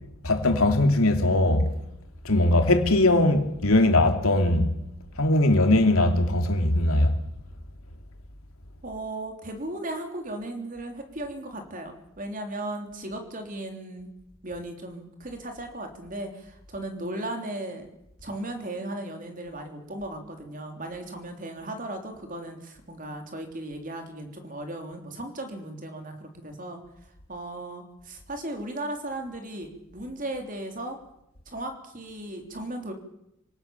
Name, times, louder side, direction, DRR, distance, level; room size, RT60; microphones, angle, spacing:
voice 1, 0.2-1.7 2.2-4.7 5.2-7.2, left 1 dB, 75° left, 2.8 m, -20 dB
voice 2, 8.8-14.1 14.4-17.9 18.2-26.8 27.3-31.0 31.4-32.9, right 1 dB, 35° right, 3.4 m, -36 dB
26.5 x 18.0 x 7.1 m
head